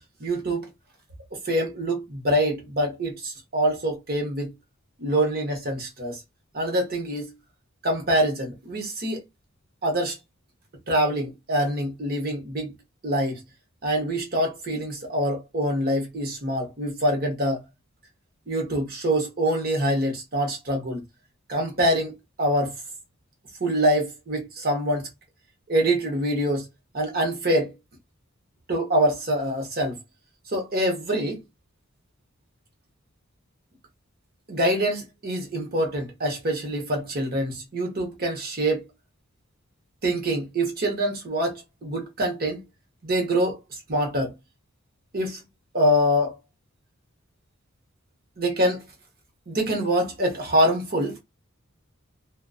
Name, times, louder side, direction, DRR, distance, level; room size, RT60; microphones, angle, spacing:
voice 1, 0.2-0.7 1.4-4.5 5.0-6.2 6.5-7.3 7.8-9.2 9.8-10.2 10.9-12.7 13.0-13.4 13.8-17.6 18.5-21.0 21.5-22.7 23.6-25.1 25.7-26.7 26.9-27.7 28.7-30.0 30.5-31.4 34.5-38.8 40.0-42.6 43.0-43.6 43.9-44.3 45.1-45.4 45.7-46.3 48.4-48.8 49.5-51.2, equal, 45° right, 0.9 m, -25 dB
2.4 x 2.2 x 2.3 m
head